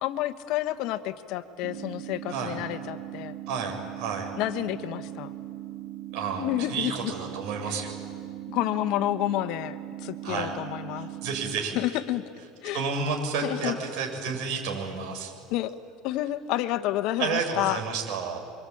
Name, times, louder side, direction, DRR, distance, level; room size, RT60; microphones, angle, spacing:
voice 1, 0.0-3.3 4.4-5.3 6.3-7.1 7.7-7.8 8.5-11.1 11.7-12.2 12.6-12.8 13.4-13.8 15.5-15.7 16.0-17.8, left 14 dB, 60° left, 11 dB, 1.2 m, -29 dB
sound 1, 1.6-11.6, right 14 dB, 85° right, 3.4 m, -39 dB
voice 2, 3.5-4.3 6.1-8.0 10.2-10.5 11.0-11.8 12.7-15.3 17.2-18.4, right 5 dB, 65° right, 3 dB, 7.0 m, -31 dB
28.0 x 24.5 x 8.7 m, 2.3 s
supercardioid pair, 130°, 0 cm